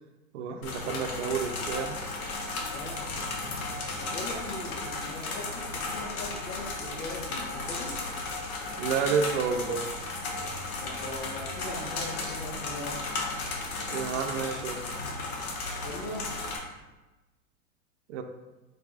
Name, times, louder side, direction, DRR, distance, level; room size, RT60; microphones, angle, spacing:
voice 1, 0.3-2.0 8.8-9.9 13.9-14.9 18.1-18.2, right 6 dB, 55° right, 5 dB, 0.6 m, -30 dB
sound 1, 0.6-16.6, left 3 dB, 65° left, 1.2 m, -35 dB
voice 2, 2.6-3.1 4.0-7.9 10.8-13.0 15.8-16.3, left 1 dB, 85° left, -5 dB, 1.3 m, -40 dB
4.7 x 4.6 x 2.4 m, 1.1 s
hypercardioid pair, 135°, 45 cm